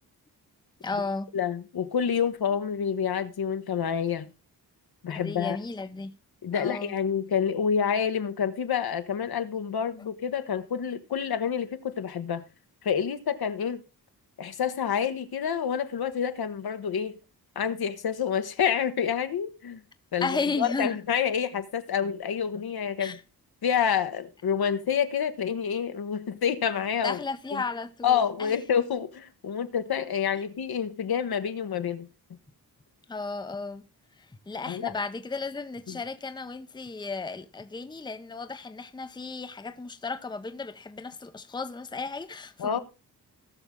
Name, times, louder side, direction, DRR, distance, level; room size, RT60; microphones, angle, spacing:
voice 1, 0.8-1.3 5.1-6.1 6.5-6.9 20.2-20.9 23.0-23.2 27.0-28.6 33.1-33.8 34.5-42.8, left 4 dB, 10° left, 0.7 m, -34 dB
voice 2, 1.3-4.3 5.0-5.6 6.4-12.4 12.8-13.8 14.4-17.2 17.5-19.8 20.1-23.2 23.6-27.2 27.5-27.6 28.0-32.1 34.7-34.9 35.9-36.0 42.6-42.8, left 7 dB, 70° left, 1.1 m, -28 dB
18.0 x 6.2 x 3.7 m
wide cardioid pair, 115°, 39 cm